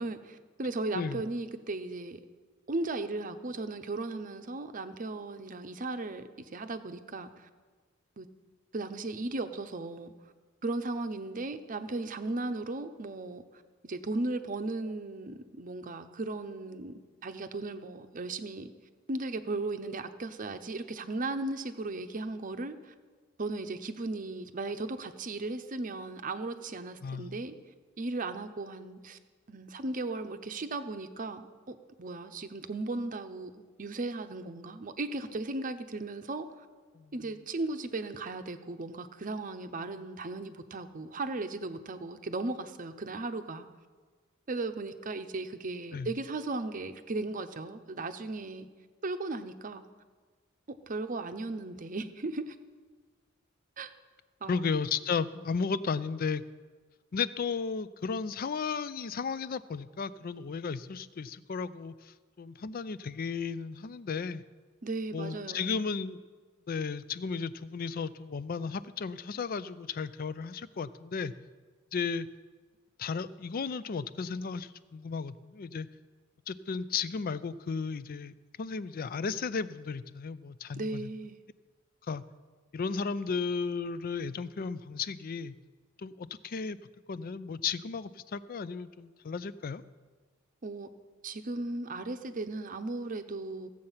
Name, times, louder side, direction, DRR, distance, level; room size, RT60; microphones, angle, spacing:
voice 1, 0.0-2.2 2.7-7.5 8.2-8.3 8.7-10.1 10.6-13.4 13.8-18.7 19.1-22.9 23.4-27.6 28.0-29.2 29.5-33.5 33.8-36.7 37.1-43.7 44.5-48.7 49.0-49.9 50.9-52.6 53.8-53.9 54.4-54.8 64.8-65.8 80.7-81.4 90.6-90.9 91.2-93.7, right 2 dB, 40° right, 9 dB, 0.7 m, -36 dB
voice 2, 27.0-27.4 36.9-37.1 45.9-46.1 54.5-56.4 57.1-64.4 65.1-66.2 66.7-71.3 71.9-72.3 73.0-75.9 76.5-81.1 82.1-82.2 82.7-85.5 86.0-86.8 87.1-89.8, left 5 dB, 45° left, 16 dB, 0.4 m, -34 dB
15.5 x 7.7 x 5.6 m, 1.4 s
head